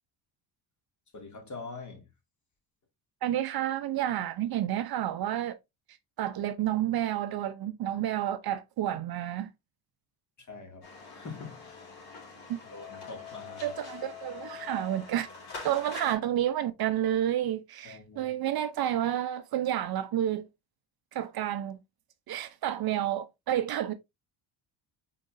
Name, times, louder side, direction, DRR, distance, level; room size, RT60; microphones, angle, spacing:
voice 1, 1.1-2.1 10.4-11.9 12.7-13.7 17.8-18.3, left 4 dB, 40° left, 2.0 m, -44 dB
voice 2, 3.2-5.6 6.2-9.5 13.6-15.3 15.6-20.5 21.1-21.8 22.3-23.9, right 11 dB, 50° right, 0.6 m, -30 dB
sound 1, 10.8-16.1, left 5 dB, 55° left, 2.8 m, -44 dB
5.3 x 3.7 x 2.4 m
cardioid pair, 95°, 47 cm